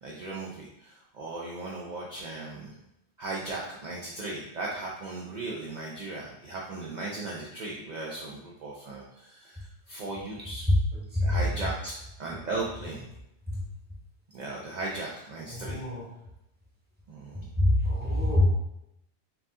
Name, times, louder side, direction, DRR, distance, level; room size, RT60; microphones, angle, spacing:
voice 1, 0.0-2.7 3.2-10.7 11.2-13.0 14.3-15.8 17.1-17.4, right 2 dB, 50° right, -3 dB, 0.7 m, -37 dB
voice 2, 10.7-11.6 12.5-12.6 13.5-13.7 15.5-16.1 17.3-18.5, left 1 dB, 10° right, -4 dB, 1.0 m, -25 dB
4.7 x 2.7 x 3.6 m, 0.84 s
omnidirectional pair, 1.1 m